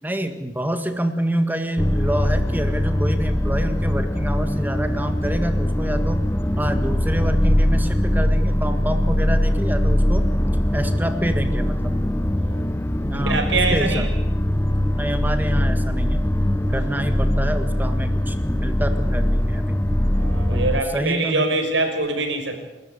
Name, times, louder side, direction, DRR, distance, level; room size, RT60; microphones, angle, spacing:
voice 1, 0.0-6.2 6.6-10.3 10.7-11.9 13.1-14.1 15.0-16.3 16.7-19.8 20.5-20.6 20.9-21.5, right 1 dB, 10° right, 7 dB, 1.6 m, -27 dB
sound 1, 1.8-20.8, left 1 dB, 15° left, 0.7 m, -21 dB
voice 2, 12.4-12.8 13.1-14.1 16.9-17.1 20.1-22.6, right 3 dB, 75° right, 5 dB, 5.9 m, -24 dB
29.5 x 14.0 x 9.6 m, 1.0 s
head